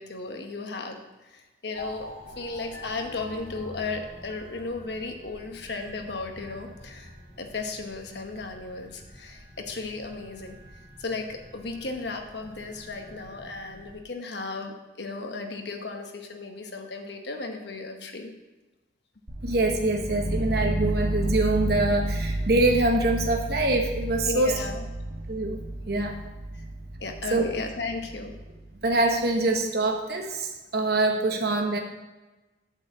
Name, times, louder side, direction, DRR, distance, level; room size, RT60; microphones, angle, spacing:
voice 1, 0.0-2.1 2.3-10.6 11.0-18.3 24.2-24.8 26.5-26.6 27.0-28.3, left 3 dB, 65° left, 4 dB, 1.1 m, -35 dB
sound 1, 1.7-14.0, equal, 45° left, 2.1 m, -46 dB
sound 2, 19.3-29.1, right 1 dB, 80° right, 1.7 m, -31 dB
voice 2, 19.4-24.5 25.3-25.6 25.9-26.2 27.3-27.4 28.8-31.8, right 2 dB, 55° right, 2 dB, 1.0 m, -24 dB
8.5 x 4.6 x 7.2 m, 1.1 s
head